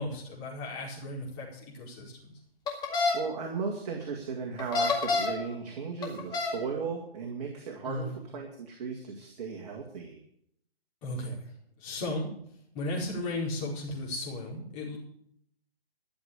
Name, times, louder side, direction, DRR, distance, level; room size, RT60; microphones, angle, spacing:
voice 1, 0.0-2.3 7.8-8.2 11.0-11.4 11.8-12.3 12.7-15.0, left 1 dB, 30° left, -3 dB, 4.7 m, -35 dB
sound 1, 2.7-3.1 4.6-5.4 6.0-6.6, left 4 dB, 15° left, 2.1 m, -27 dB
voice 2, 3.1-8.1 8.3-10.2, right 5 dB, 40° right, 1 dB, 2.1 m, -36 dB
13.0 x 7.2 x 8.4 m, 0.70 s
hypercardioid pair, 140°, 31 cm